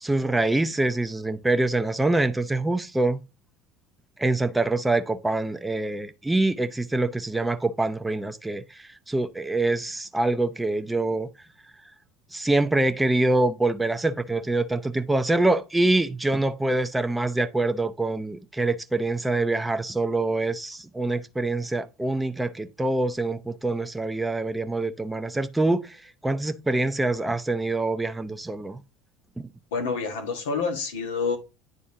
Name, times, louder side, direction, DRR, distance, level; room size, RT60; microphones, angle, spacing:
voice 1, 0.0-3.2 4.2-11.3 12.3-28.8 29.4-29.5, right 2 dB, 10° right, 0.6 m, -25 dB
voice 2, 29.7-31.4, left 5 dB, 85° left, 1.4 m, -28 dB
10.0 x 3.6 x 2.8 m
hypercardioid pair, 85°, 0 cm